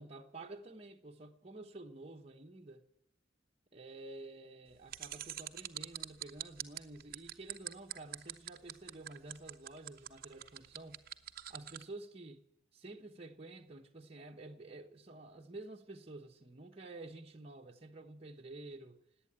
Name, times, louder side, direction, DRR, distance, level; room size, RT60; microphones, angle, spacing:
voice 1, 0.0-2.8 3.7-11.0 11.5-12.5 12.7-19.0, right 2 dB, 30° right, 1.1 m, -50 dB
sound 1, 4.9-11.8, right 12 dB, 50° right, 0.8 m, -43 dB
18.5 x 8.9 x 8.7 m
head